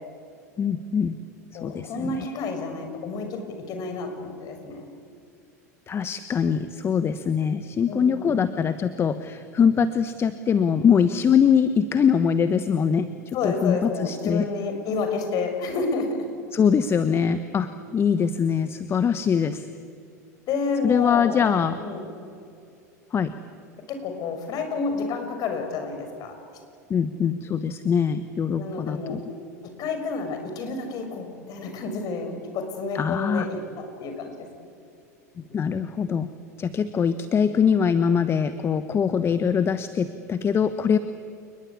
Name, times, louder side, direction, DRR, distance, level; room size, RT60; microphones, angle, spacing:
voice 1, 0.6-1.2 1.6-2.3 5.9-13.1 13.4-14.5 16.5-19.7 20.8-21.8 23.1-23.3 26.9-29.2 32.9-33.5 35.5-36.3 36.6-41.0, left 7 dB, 25° left, 12 dB, 1.1 m, -23 dB
voice 2, 1.5-4.9 7.9-8.4 13.3-16.2 20.5-21.5 21.8-22.1 23.9-26.4 28.6-29.2 29.6-34.5, left 4 dB, 45° left, 6 dB, 5.9 m, -30 dB
29.0 x 20.5 x 8.6 m, 2.5 s
hypercardioid pair, 85°, 9 cm